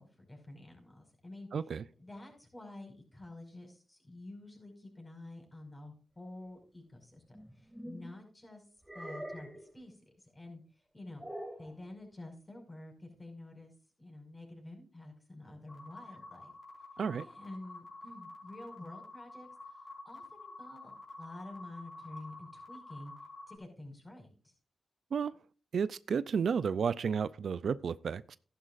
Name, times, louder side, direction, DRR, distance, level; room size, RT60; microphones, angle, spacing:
voice 1, 0.0-8.7 8.9-10.6 10.9-11.3 11.6-13.7 14.0-16.5 17.2-23.1 23.5-24.5, left 2 dB, 20° left, 5.4 m, -49 dB
voice 2, 1.5-1.8 17.0-17.2 25.1-25.3 25.7-28.4, right 6 dB, 75° right, 0.4 m, -32 dB
sound 1, 7.3-8.1 8.8-9.7 11.2-11.7, right 1 dB, 10° right, 2.5 m, -44 dB
sound 2, 15.7-23.6, left 2 dB, 40° left, 4.7 m, -49 dB
14.5 x 11.0 x 2.5 m
cardioid pair, 60°, 0 cm